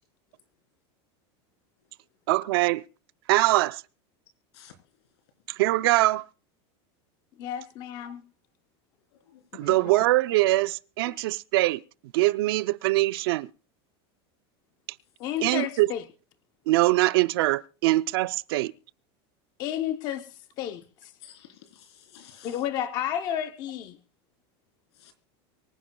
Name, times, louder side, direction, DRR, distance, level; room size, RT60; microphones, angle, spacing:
voice 1, 2.3-2.8 3.3-3.8 5.6-6.3 9.5-11.8 12.1-13.5 15.4-15.9 16.7-18.7, right 19 dB, 60° right, 0.5 m, -23 dB
voice 2, 7.4-8.2 9.6-9.9 11.1-11.2 15.2-16.0 19.6-21.1 22.4-24.0, left 10 dB, 30° left, 0.7 m, -32 dB
voice 3, 21.2-22.6 25.0-25.1, left 10 dB, 75° left, 3.6 m, -51 dB
23.5 x 10.5 x 2.3 m
supercardioid pair, 180°, 14 cm